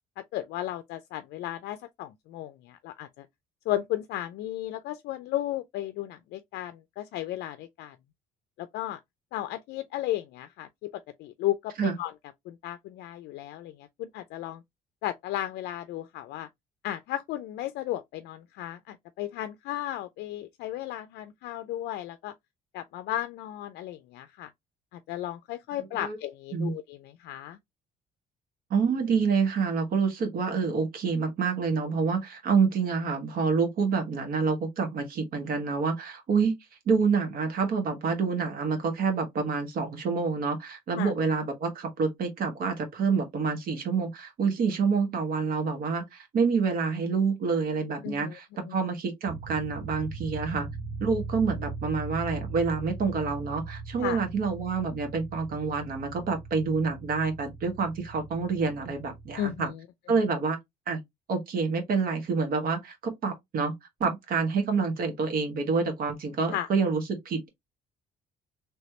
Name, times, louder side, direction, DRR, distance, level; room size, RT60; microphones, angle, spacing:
voice 1, 0.2-3.3 3.7-8.0 8.6-9.0 9.3-12.1 12.5-14.6 15.0-16.5 16.8-22.3 22.7-24.5 24.9-27.6 40.9-41.1 48.0-48.3 48.7-48.8 54.0-54.2 59.4-59.8 66.5-66.7, left 13 dB, 75° left, 0.4 m, -34 dB
voice 2, 28.7-36.6 36.8-50.7 51.0-59.7 60.1-60.6 60.9-61.0 61.3-63.7 64.0-67.5, right 5 dB, 60° right, 1.5 m, -27 dB
sound 1, 49.3-59.7, right 4 dB, 30° right, 0.7 m, -40 dB
3.3 x 3.1 x 2.8 m
cardioid pair, 110°, 17 cm